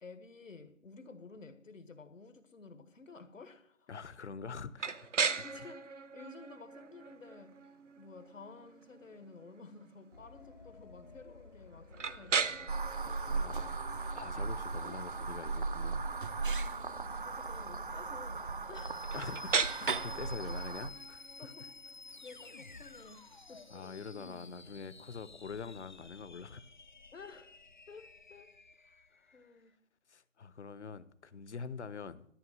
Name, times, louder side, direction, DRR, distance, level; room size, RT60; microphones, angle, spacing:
voice 1, 0.0-3.9 5.4-7.6 8.0-12.8 16.9-19.1 20.4-20.5 21.4-21.7 22.2-23.7 27.1-27.5 27.9-28.5 28.8-29.7, left 4 dB, 80° left, 1.7 m, -53 dB
voice 2, 3.9-5.4 13.3-16.0 19.1-21.3 23.7-26.6 29.2-29.5 30.1-32.3, left 5 dB, 60° left, 0.9 m, -45 dB
sound 1, 4.8-24.5, right 5 dB, 70° right, 1.0 m, -40 dB
sound 2, 10.1-29.5, left 3 dB, 40° left, 0.5 m, -53 dB
sound 3, 12.7-20.9, right 4 dB, 45° right, 0.5 m, -37 dB
13.0 x 6.0 x 7.4 m
figure-of-eight pair, 165°, 38 cm